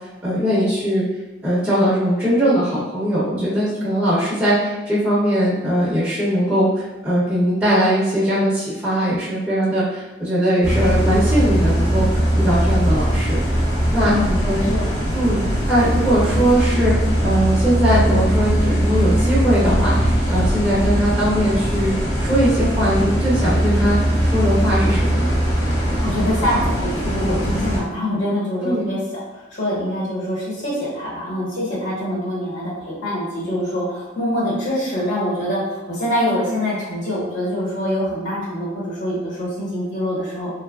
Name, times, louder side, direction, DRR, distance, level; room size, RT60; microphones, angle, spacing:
voice 1, 0.2-1.1 1.4-13.4 13.9-14.1 14.4-14.7 15.1-15.4 15.7-21.9 22.2-24.0 24.2-25.3 28.6-28.9, equal, 10° right, -10 dB, 0.5 m, -20 dB
sound 1, 10.6-27.8, equal, 55° left, 0.8 m, -20 dB
voice 2, 14.0-14.4 14.7-14.9 26.0-40.5, left 1 dB, 70° left, -7 dB, 1.1 m, -24 dB
2.9 x 2.3 x 2.2 m, 1.1 s
head